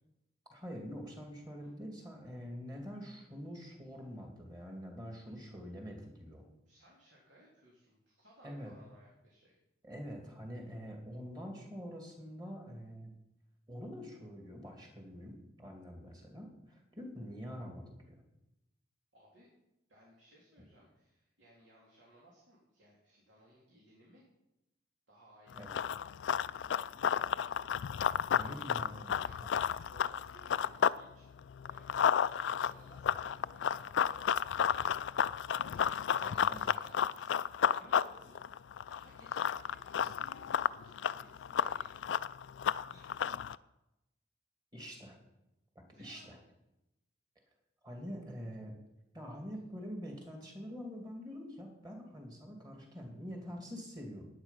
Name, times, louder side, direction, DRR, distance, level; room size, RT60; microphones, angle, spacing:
voice 1, 0.5-6.4 8.4-8.7 9.8-13.1 13.7-18.2 25.6-25.8 28.4-29.2 36.2-36.6 44.7-45.2 45.7-46.4 47.8-48.7 49.1-54.3, equal, 20° right, 2 dB, 2.5 m, -45 dB
voice 2, 6.6-9.6 19.1-19.5 19.9-24.3 25.1-25.9 26.2-28.6 29.1-32.0 32.3-34.6 35.6-42.2 42.9-43.5 45.9-46.4, equal, 80° right, -4 dB, 3.2 m, -62 dB
Run, 25.5-31.0 31.3-43.6, left 8 dB, 75° left, 0.3 m, -32 dB
12.0 x 9.3 x 5.8 m, 0.90 s
head